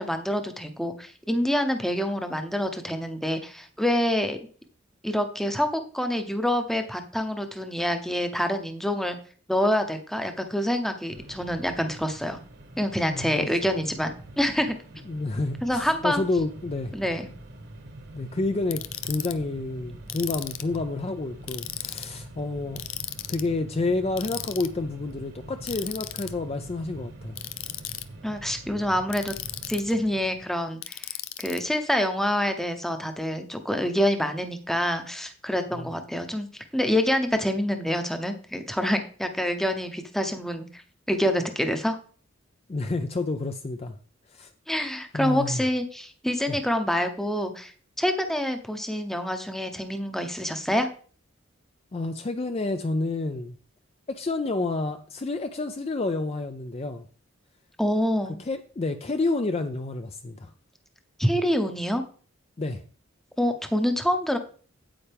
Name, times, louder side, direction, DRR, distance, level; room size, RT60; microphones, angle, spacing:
voice 1, 0.0-4.4 5.0-9.2 9.5-12.4 12.8-14.7 15.6-16.2 16.9-17.3 28.2-29.3 29.7-40.8 41.1-42.0 44.7-50.9 57.8-58.4 61.2-62.0 63.4-64.4, equal, ahead, 6 dB, 0.8 m, -26 dB
Mechanisms, 11.1-30.5, right 1 dB, 55° right, 1.4 m, -44 dB
voice 2, 13.1-13.5 15.1-16.9 18.1-22.8 23.3-27.4 35.7-35.9 42.7-43.9 44.3-44.5 45.1-45.6 46.5-46.6 51.9-53.5 54.1-57.0 58.4-60.5 62.6-62.8, left 2 dB, 30° left, 7 dB, 0.4 m, -29 dB
Ratchet pawl, 18.7-19.3 20.1-20.8 21.5-22.1 22.8-23.5 24.2-24.7 25.7-26.3 27.4-28.0 29.1-29.9 30.8-31.6, left 14 dB, 90° left, 0.6 m, -35 dB
8.8 x 8.5 x 3.5 m, 0.42 s
head